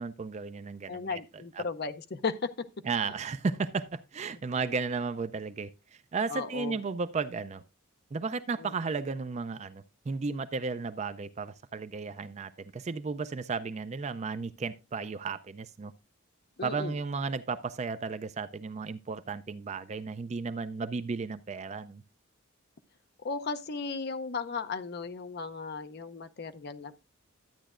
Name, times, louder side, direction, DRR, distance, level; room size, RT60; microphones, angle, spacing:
voice 1, 0.0-1.2 1.5-1.6 2.9-7.6 8.1-15.9 16.6-22.0, right 4 dB, 30° right, 0.4 m, -34 dB
voice 2, 0.9-2.7 3.0-3.1 6.3-6.8 8.6-8.7 16.6-16.9 23.2-27.0, left 4 dB, 50° left, 0.6 m, -35 dB
12.0 x 9.0 x 2.4 m
head